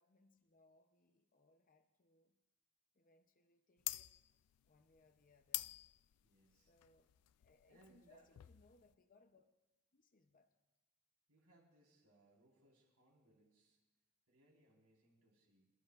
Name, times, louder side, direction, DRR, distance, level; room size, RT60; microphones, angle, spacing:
voice 1, 0.0-2.4 2.9-4.2 4.6-5.8 6.5-7.1 7.4-9.5 9.9-10.5, left 3 dB, 40° left, 6 dB, 0.7 m, -71 dB
sound 1, 3.8-8.9, left 18 dB, 90° left, 0.3 m, -47 dB
voice 2, 6.2-6.7 7.7-8.3 11.3-13.8 14.3-15.7, right 1 dB, 85° right, -2 dB, 4.6 m, -71 dB
27.5 x 12.0 x 2.5 m, 1.1 s
head